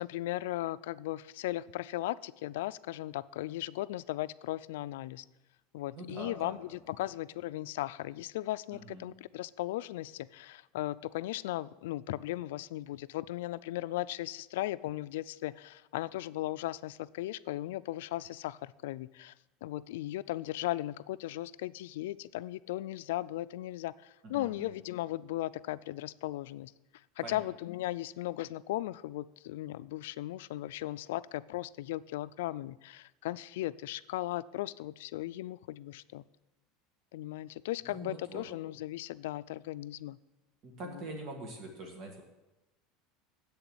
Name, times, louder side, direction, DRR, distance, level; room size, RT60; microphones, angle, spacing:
voice 1, 0.0-5.2 5.7-19.3 19.6-26.7 27.2-36.2 37.1-40.2, left 15 dB, 85° left, 17 dB, 0.3 m, -37 dB
voice 2, 5.9-6.8 8.7-9.1 24.2-24.7 27.2-27.5 37.8-38.4 40.6-42.2, right 2 dB, 40° right, 2 dB, 1.6 m, -44 dB
8.2 x 7.1 x 7.8 m, 0.99 s
supercardioid pair, 160°, 0 cm